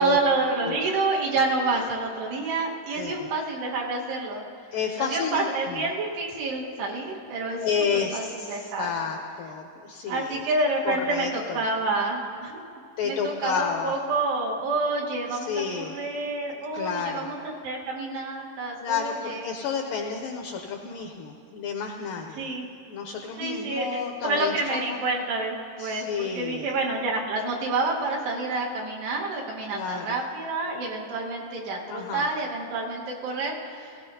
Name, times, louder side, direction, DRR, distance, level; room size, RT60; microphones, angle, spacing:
voice 1, 0.0-4.4 5.0-7.6 7.9-9.1 10.1-12.6 13.0-15.5 15.8-19.4 22.4-22.7 23.3-34.0, right 3 dB, 85° right, -3 dB, 3.5 m, -28 dB
voice 2, 3.0-3.3 4.7-5.9 7.6-10.4 10.9-11.6 13.0-13.9 15.3-16.0 16.7-17.3 18.8-22.5 22.9-25.0 25.8-26.7 29.7-30.2 31.9-32.3, left 6 dB, 85° left, 2 dB, 1.9 m, -31 dB
17.0 x 17.0 x 2.7 m, 2.4 s
omnidirectional pair, 4.6 m